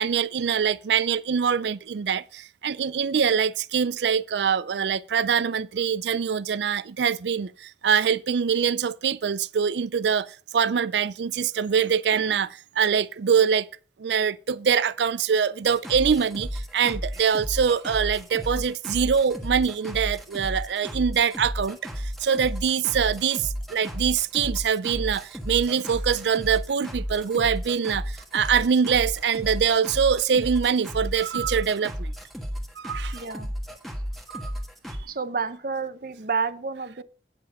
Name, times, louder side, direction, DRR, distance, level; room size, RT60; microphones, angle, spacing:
voice 1, 0.0-13.7 14.0-32.1 32.8-33.2 34.3-34.5, right 7 dB, 75° right, 0.4 m, -24 dB
sound 1, 15.7-35.0, equal, ahead, 1.4 m, -34 dB
voice 2, 33.1-33.5 35.0-37.0, right 5 dB, 50° right, 0.8 m, -30 dB
10.0 x 6.7 x 5.5 m
head